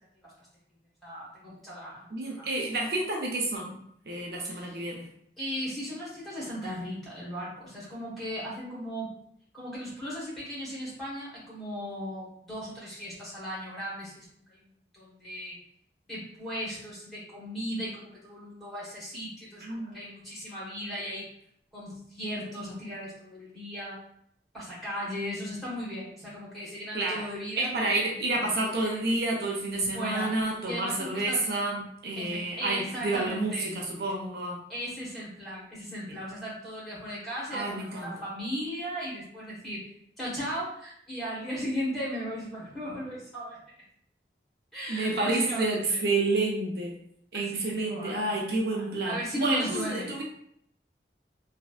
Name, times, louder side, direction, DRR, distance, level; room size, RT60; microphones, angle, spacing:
voice 1, 1.0-2.1 2.4-2.5 4.5-4.8 5.4-9.1 9.5-14.7 14.9-15.6 16.1-21.3 21.7-24.0 24.5-27.7 29.9-30.3 30.7-31.4 32.2-33.7 34.7-39.9 40.2-43.6 44.7-46.0 47.3-50.2, equal, ahead, -9 dB, 1.3 m, -37 dB
voice 2, 2.1-3.8 4.1-5.0 19.6-20.0 26.9-27.2 27.6-34.6 37.5-38.1 44.9-46.9 47.3-50.2, right 2 dB, 65° right, -1 dB, 0.5 m, -29 dB
3.1 x 2.6 x 2.4 m, 0.69 s
head